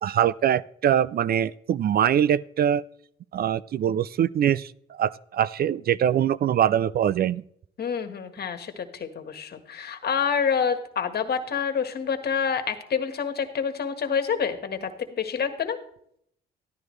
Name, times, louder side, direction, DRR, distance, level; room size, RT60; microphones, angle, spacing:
voice 1, 0.0-2.8 3.3-7.4, right 10 dB, 50° right, 20 dB, 0.4 m, -23 dB
voice 2, 7.8-15.8, left 6 dB, 55° left, 8 dB, 1.6 m, -27 dB
13.5 x 12.0 x 3.2 m, 0.67 s
cardioid pair, 90°, 20 cm